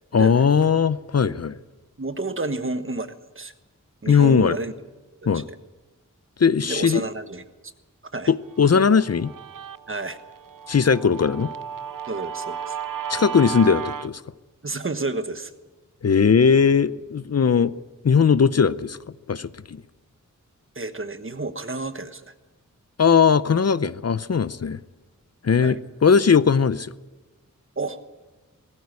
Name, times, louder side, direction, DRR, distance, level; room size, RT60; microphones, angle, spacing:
voice 1, 0.1-1.6 4.1-4.6 5.3-5.5 6.4-7.0 8.3-9.3 10.7-11.5 13.1-14.2 16.0-17.8 18.0-19.0 19.3-19.8 23.0-24.8 25.4-26.9, left 6 dB, 50° left, 16 dB, 0.6 m, -19 dB
voice 2, 2.0-3.5 4.0-4.7 5.2-5.4 6.6-7.4 8.1-8.3 9.9-10.2 12.1-12.8 14.6-15.5 20.7-22.2 25.6-25.8 27.8-28.0, right 3 dB, 40° right, 10 dB, 1.3 m, -30 dB
Guitar, 8.6-14.1, right 8 dB, 80° right, 0.7 m, -34 dB
20.0 x 14.0 x 9.5 m, 1.2 s
wide cardioid pair, 80°, 32 cm